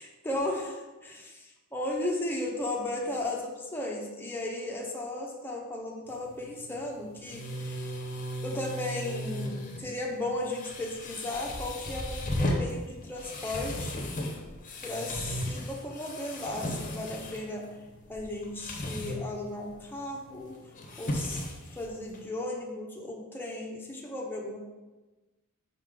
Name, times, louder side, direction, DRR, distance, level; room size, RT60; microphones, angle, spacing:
voice 1, 0.2-7.9 8.4-14.1 14.8-17.7 18.1-20.5 21.0-21.4 21.7-24.6, left 1 dB, 10° left, -1 dB, 0.8 m, -35 dB
sound 1, 6.1-22.3, left 1 dB, 35° left, 0.8 m, -36 dB
5.4 x 5.2 x 3.8 m, 1.2 s
head